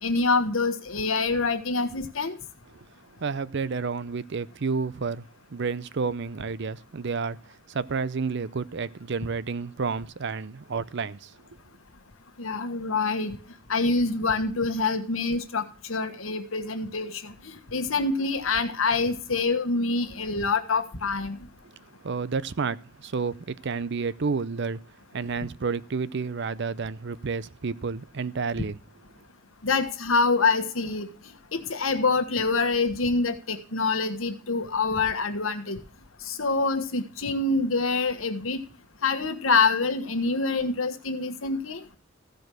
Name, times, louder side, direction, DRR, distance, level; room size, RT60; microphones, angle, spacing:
voice 1, 0.0-2.4 12.4-13.4 13.7-21.4 29.6-31.1 31.5-35.8 36.2-38.6 39.0-41.8, left 3 dB, 90° left, 1.5 m, -26 dB
voice 2, 3.2-7.4 7.7-11.3 22.0-24.8 25.1-28.8, right 5 dB, 60° right, 0.6 m, -30 dB
15.5 x 5.2 x 6.1 m
head